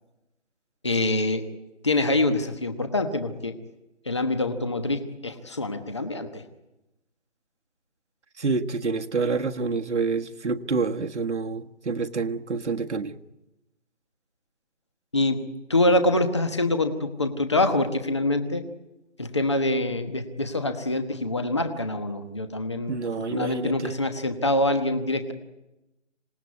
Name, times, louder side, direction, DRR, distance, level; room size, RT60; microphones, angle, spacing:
voice 1, 0.8-1.5 1.8-3.5 4.1-6.4 15.1-15.4 15.7-18.6 19.2-25.3, left 2 dB, 25° left, 1.2 m, -25 dB
voice 2, 8.4-13.2 22.9-23.9, right 4 dB, 70° right, 1.5 m, -28 dB
26.5 x 19.0 x 9.5 m
figure-of-eight pair, 175°, 36 cm